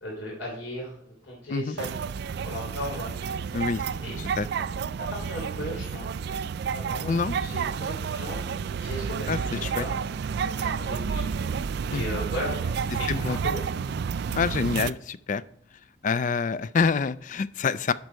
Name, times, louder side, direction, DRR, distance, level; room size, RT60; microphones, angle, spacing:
voice 1, 0.0-1.9 2.4-3.2 4.0-4.1 5.1-6.0 6.7-8.5 8.8-9.3 9.7-9.9 10.4-11.3 11.9-13.6, equal, 80° left, -4 dB, 3.2 m, -36 dB
sound 1, 1.8-14.9, right 6 dB, 55° right, 0.3 m, -30 dB
voice 2, 9.3-9.8 11.9-12.0 13.1-13.4 14.3-15.4 16.0-17.9, left 5 dB, 40° left, 17 dB, 0.4 m, -26 dB
11.5 x 5.4 x 4.5 m, 0.64 s
head